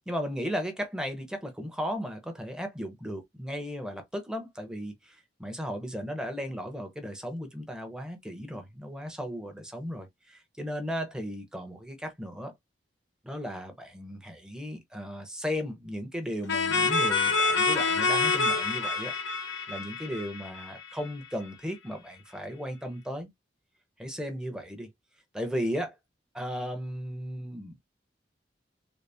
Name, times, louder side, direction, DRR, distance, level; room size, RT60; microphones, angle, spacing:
voice 1, 0.1-12.5 13.2-19.1 19.7-23.3 24.0-24.9 25.3-25.9 26.3-27.8, equal, 5° right, 0.8 m, -35 dB
sound 1, 16.5-21.1, left 4 dB, 85° left, 1.0 m, -27 dB
4.0 x 2.0 x 3.5 m
head